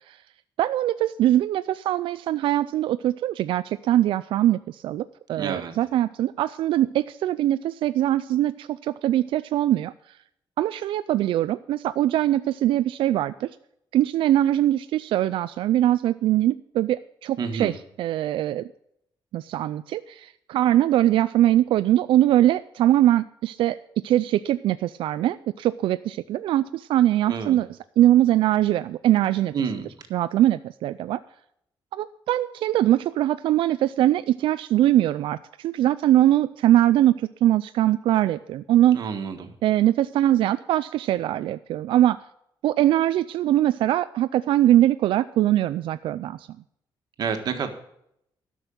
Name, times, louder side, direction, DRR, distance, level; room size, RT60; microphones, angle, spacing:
voice 1, 0.6-10.2 10.6-13.5 13.9-17.7 18.0-18.7 19.3-23.8 24.0-27.7 28.0-29.5 30.1-31.2 31.9-39.0 39.6-42.2 42.6-46.5, right 13 dB, 85° right, 13 dB, 0.4 m, -22 dB
voice 2, 5.4-5.7 17.4-17.7 27.3-27.6 29.5-29.9 38.9-39.5 47.2-47.7, right 6 dB, 50° right, 6 dB, 1.5 m, -29 dB
12.5 x 6.3 x 8.6 m, 0.73 s
cardioid pair, 165°, 9 cm